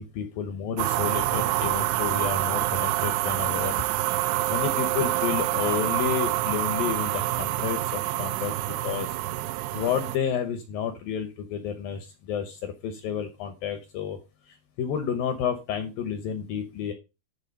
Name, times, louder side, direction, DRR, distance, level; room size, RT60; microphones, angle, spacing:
voice 1, 0.0-3.8 4.5-8.5 8.8-9.2 9.7-14.2 14.5-16.9, left 8 dB, 75° left, 7 dB, 2.2 m, -30 dB
sound 1, 0.8-10.2, right 16 dB, 85° right, 2.7 m, -27 dB
11.0 x 4.1 x 5.2 m, 0.28 s
omnidirectional pair, 5.0 m